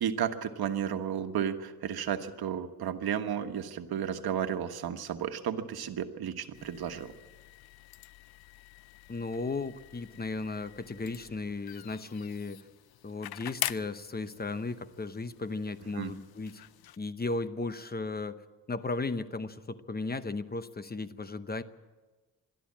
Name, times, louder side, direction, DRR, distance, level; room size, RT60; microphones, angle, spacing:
voice 1, 0.0-7.1 15.9-16.1, right 9 dB, 85° right, 7 dB, 1.4 m, -33 dB
sound 1, 6.5-17.0, left 13 dB, 80° left, 0.6 m, -44 dB
voice 2, 9.1-12.7 13.0-16.6 17.0-21.6, left 3 dB, 25° left, 12 dB, 0.9 m, -35 dB
22.5 x 13.5 x 8.7 m, 1.3 s
cardioid pair, 105°, 37 cm